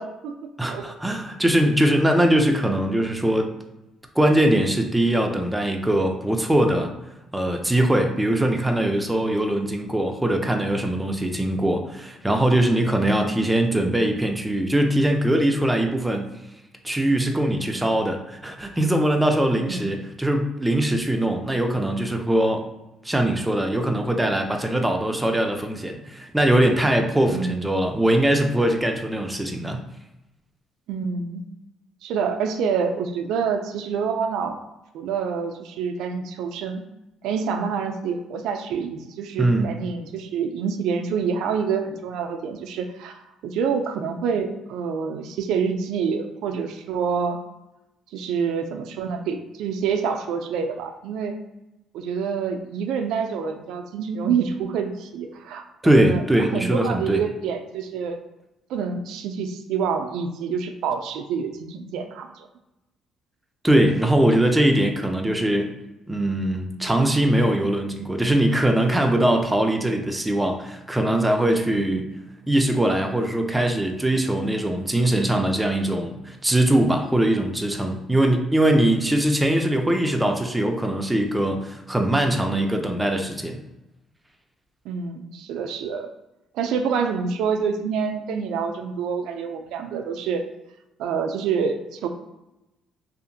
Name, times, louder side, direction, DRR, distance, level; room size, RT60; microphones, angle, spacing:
voice 1, 0.0-0.9 17.7-17.9 19.6-19.9 27.2-27.6 30.9-31.4 32.0-34.6 34.9-36.8 37.2-47.4 48.1-51.4 51.9-56.2 56.5-58.2 58.7-62.5 71.8-72.1 84.9-86.1 86.5-90.4 91.0-92.1, right 6 dB, 85° right, 6 dB, 0.3 m, -27 dB
voice 2, 0.6-3.5 4.2-6.9 7.3-16.3 16.8-22.6 23.0-29.8 39.4-39.7 55.8-57.2 63.6-65.7 66.1-72.0 72.5-83.6, right 1 dB, 10° right, 3 dB, 0.4 m, -21 dB
2.8 x 2.4 x 2.6 m, 0.95 s
cardioid pair, 110°, 0 cm